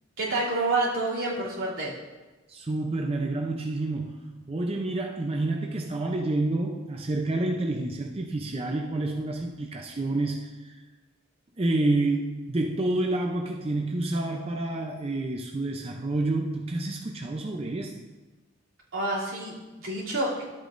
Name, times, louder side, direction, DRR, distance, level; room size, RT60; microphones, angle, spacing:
voice 1, 0.2-1.9 18.9-20.4, right 2 dB, 85° right, -7 dB, 3.0 m, -28 dB
voice 2, 2.5-4.2 4.5-10.8 11.6-18.0, right 2 dB, 30° right, 1 dB, 0.5 m, -29 dB
13.0 x 8.1 x 2.6 m, 1.2 s
head